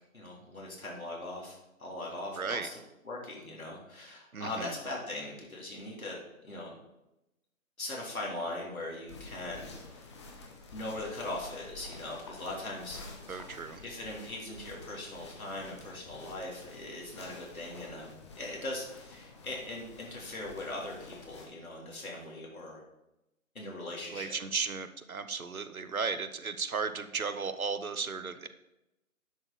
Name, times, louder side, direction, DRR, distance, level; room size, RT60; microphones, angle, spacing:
voice 1, 0.1-2.8 3.1-6.8 7.8-10.2 10.7-13.0 13.3-13.5 13.8-22.8 23.5-24.3, left 2 dB, 80° left, -3 dB, 4.0 m, -40 dB
voice 2, 2.3-2.7 4.3-4.8 13.3-13.8 24.1-28.5, right 5 dB, 80° right, 11 dB, 1.0 m, -35 dB
sound 1, 9.1-21.4, left 3 dB, 20° left, 1.0 m, -50 dB
10.5 x 6.4 x 4.3 m, 0.92 s
figure-of-eight pair, 150°, 42 cm